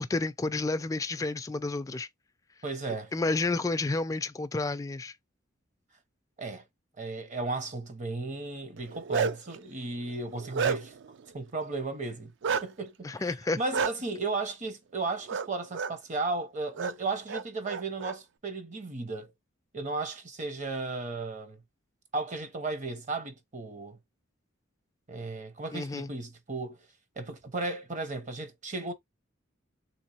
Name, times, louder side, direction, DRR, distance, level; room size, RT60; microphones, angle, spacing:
voice 1, 0.0-2.1 3.1-5.1 13.0-13.6 25.7-26.1, left 3 dB, 15° left, 0.3 m, -30 dB
voice 2, 2.6-3.1 6.4-6.6 7.0-10.9 11.3-12.3 12.6-19.3 19.7-21.6 22.1-24.0 25.1-26.8 27.2-28.9, right 3 dB, 35° right, 0.7 m, -35 dB
Bark, 8.8-9.5 10.1-11.1 12.4-12.6 13.7-13.9 15.3-15.5 15.7-15.9 16.7-16.9 17.3-18.1, right 6 dB, 60° right, 0.4 m, -30 dB
3.5 x 2.8 x 2.9 m
head